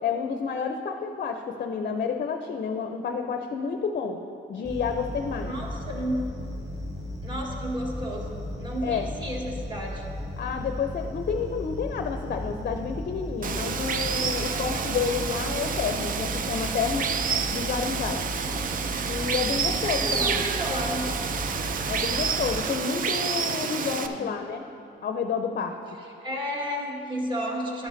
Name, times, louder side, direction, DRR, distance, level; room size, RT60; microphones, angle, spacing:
voice 1, 0.0-4.2 4.5-5.5 8.8-9.1 10.4-17.2 17.5-18.2 19.0-20.4 21.9-24.7 25.0-25.8, left 6 dB, 45° left, 6 dB, 0.5 m, -30 dB
sound 1, 4.6-22.6, left 1 dB, 5° right, 1.9 m, -36 dB
voice 2, 5.3-6.4 7.2-10.0 14.5-14.8 19.8-21.2 24.0-24.4 26.2-27.9, equal, 25° right, -2 dB, 1.5 m, -32 dB
Water, 13.4-24.1, right 6 dB, 45° right, 0.5 m, -29 dB
11.0 x 9.0 x 2.7 m, 2.6 s
cardioid pair, 90°, 20 cm